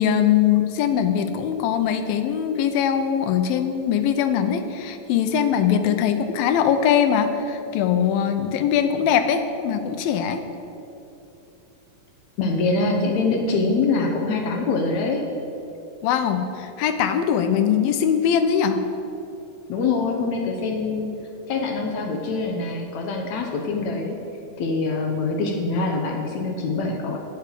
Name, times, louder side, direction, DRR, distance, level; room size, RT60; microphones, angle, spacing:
voice 1, 0.0-10.4 16.0-18.8, left 8 dB, 85° left, 7 dB, 2.5 m, -21 dB
voice 2, 12.4-15.3 19.7-21.1 21.5-24.2 24.6-27.2, left 3 dB, 70° left, 1 dB, 1.7 m, -24 dB
9.4 x 7.1 x 6.6 m, 2.8 s
omnidirectional pair, 4.1 m